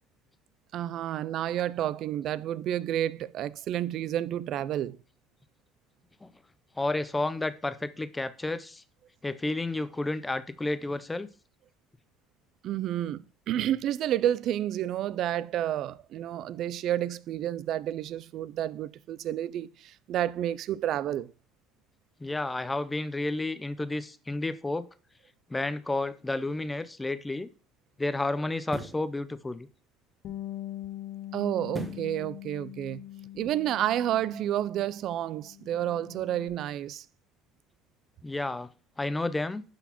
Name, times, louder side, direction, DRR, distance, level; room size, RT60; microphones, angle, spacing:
voice 1, 0.7-5.0 12.6-21.3 31.3-33.1 33.3-37.1, right 11 dB, 55° right, 0.3 m, -30 dB
voice 2, 6.8-8.8 9.2-11.3 22.2-24.8 25.5-27.5 28.0-29.7 38.2-38.7 39.0-39.6, left 2 dB, 10° left, 0.5 m, -31 dB
sound 1, 26.9-27.0 28.6-29.1 31.7-32.2 32.6-32.7, right 2 dB, 15° right, 0.9 m, -38 dB
Bass guitar, 30.2-35.0 35.3-36.5, left 13 dB, 50° left, 0.6 m, -42 dB
11.5 x 4.0 x 2.9 m
supercardioid pair, 110°, 0 cm